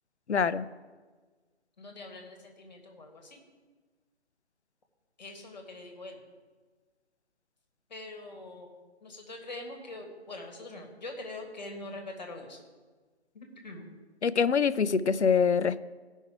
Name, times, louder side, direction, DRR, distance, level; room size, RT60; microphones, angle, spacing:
voice 1, 0.3-0.7 14.2-15.8, left 6 dB, 85° left, 16 dB, 0.5 m, -25 dB
voice 2, 1.8-3.4 5.2-6.2 7.9-8.7 9.0-12.6 13.3-13.9, left 2 dB, 40° left, 2 dB, 1.7 m, -43 dB
15.5 x 5.5 x 4.7 m, 1.4 s
figure-of-eight pair, 155°, 33 cm